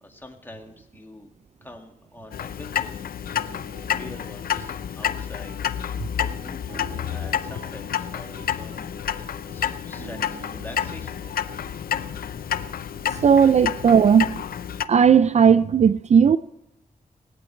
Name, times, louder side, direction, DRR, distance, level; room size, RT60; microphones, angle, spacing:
voice 1, 0.0-1.3 1.6-3.5 4.0-5.6 5.9-11.2 13.1-13.2, left 2 dB, 15° left, 2.0 m, -45 dB
Clock, 2.3-14.9, left 9 dB, 90° left, 0.6 m, -29 dB
sound 1, 3.3-13.4, right 5 dB, 75° right, 2.5 m, -48 dB
voice 2, 13.2-14.3 14.9-16.4, right 7 dB, 50° right, 0.4 m, -16 dB
20.0 x 18.0 x 3.3 m
wide cardioid pair, 110°, 15 cm